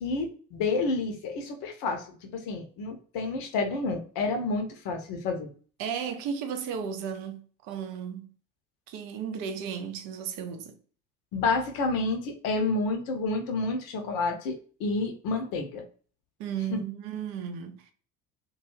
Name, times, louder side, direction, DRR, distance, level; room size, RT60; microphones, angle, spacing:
voice 1, 0.0-5.5 11.3-15.8 16.7-16.8, left 3 dB, 50° left, 0.8 m, -29 dB
voice 2, 5.8-8.3 8.9-10.8 16.4-17.9, right 7 dB, 45° right, 0.6 m, -34 dB
2.2 x 2.2 x 3.2 m
figure-of-eight pair, 60°, 47 cm